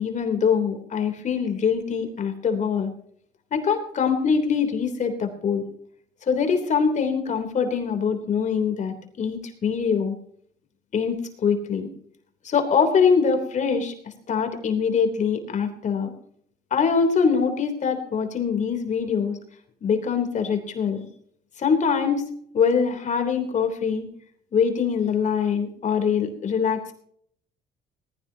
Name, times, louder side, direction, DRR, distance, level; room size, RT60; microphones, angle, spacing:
voice 1, 0.0-2.9 3.5-5.6 6.3-10.2 10.9-11.9 12.4-14.0 14.3-16.1 16.7-19.4 19.8-21.1 21.6-22.3 22.5-24.1 24.5-26.9, left 6 dB, 45° left, 6 dB, 3.4 m, -23 dB
19.5 x 16.0 x 2.9 m, 0.64 s
cardioid pair, 110°, 17 cm